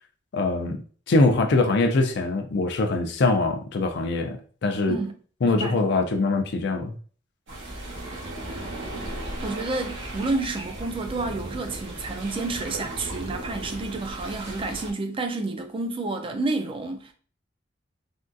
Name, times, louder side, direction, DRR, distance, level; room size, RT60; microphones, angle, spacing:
voice 1, 0.3-0.8 1.1-5.0 5.4-7.0, left 3 dB, 65° left, 0.4 m, -23 dB
voice 2, 5.4-5.8 9.4-17.1, right 3 dB, 30° right, 0.4 m, -30 dB
sound 1, 7.5-14.9, right 1 dB, 80° right, 1.1 m, -36 dB
3.5 x 2.3 x 2.6 m
head